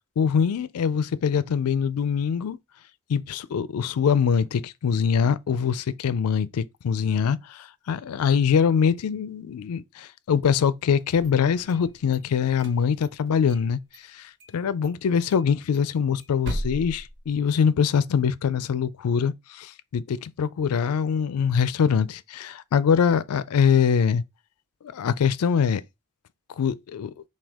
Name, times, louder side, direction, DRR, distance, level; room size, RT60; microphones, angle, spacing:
voice 1, 0.2-2.6 3.1-13.8 14.1-24.2 24.8-25.8 26.6-27.1, left 7 dB, 90° left, 0.4 m, -23 dB
sound 1, 11.0-12.2 12.5-13.7 13.9-14.0 14.4-14.6 14.8-14.9 15.3-17.9, equal, 55° right, 1.0 m, -37 dB
5.9 x 2.3 x 3.5 m
head